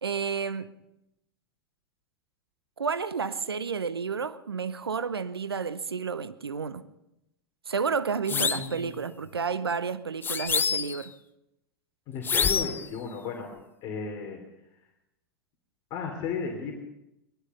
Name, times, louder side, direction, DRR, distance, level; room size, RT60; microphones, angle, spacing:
voice 1, 0.0-0.7 2.8-6.9 7.7-11.1, right 5 dB, 85° right, 15 dB, 0.8 m, -31 dB
voice 2, 8.3-8.9 12.1-13.5 13.8-14.4 15.9-16.7, left 5 dB, 40° left, 1 dB, 3.0 m, -34 dB
sound 1, 8.3-8.7 10.2-11.1 12.2-12.9, left 6 dB, 15° left, 0.6 m, -27 dB
18.5 x 13.0 x 5.5 m, 0.88 s
hypercardioid pair, 95°, 12 cm